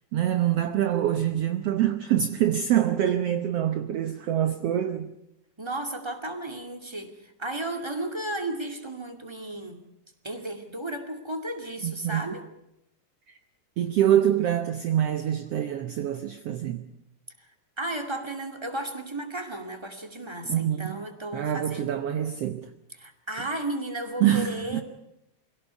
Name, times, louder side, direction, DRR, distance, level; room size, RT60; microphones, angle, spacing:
voice 1, 0.1-5.1 11.8-12.2 13.3-13.4 13.8-16.8 20.5-21.0 21.3-22.7 24.2-24.8, right 11 dB, 65° right, 1.8 m, -25 dB
voice 2, 5.6-9.8 10.2-12.4 17.4-17.5 17.8-22.0 23.0-24.8, right 1 dB, 10° right, 2.0 m, -34 dB
24.0 x 17.0 x 8.3 m
omnidirectional pair, 3.5 m